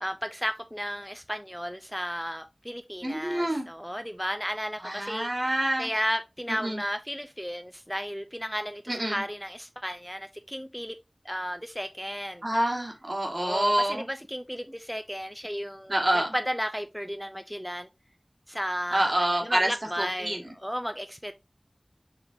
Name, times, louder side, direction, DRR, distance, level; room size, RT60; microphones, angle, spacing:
voice 1, 0.0-5.3 5.8-11.0 11.2-12.4 13.3-17.9 18.5-21.3, equal, ahead, 0.3 m, -34 dB
voice 2, 3.0-3.6 4.8-5.9 6.6-6.8 8.9-9.2 12.4-14.0 15.9-16.3 18.9-19.7 20.0-20.4, right 1 dB, 50° right, 1.2 m, -27 dB
4.5 x 3.8 x 2.6 m
wide cardioid pair, 45°, 0 cm